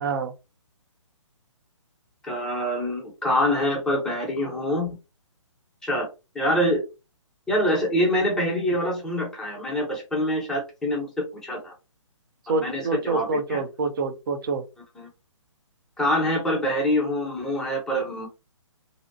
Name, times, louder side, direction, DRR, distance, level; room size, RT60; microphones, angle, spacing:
voice 1, 0.0-0.3 12.5-14.6, right 4 dB, 40° right, 0.4 m, -26 dB
voice 2, 2.2-5.0 5.8-6.1 6.3-6.8 7.5-11.1 11.3-11.7 12.5-13.6 15.0-15.1 16.0-18.3, equal, 5° left, 0.6 m, -25 dB
2.6 x 2.0 x 2.5 m
figure-of-eight pair, 140°, 17 cm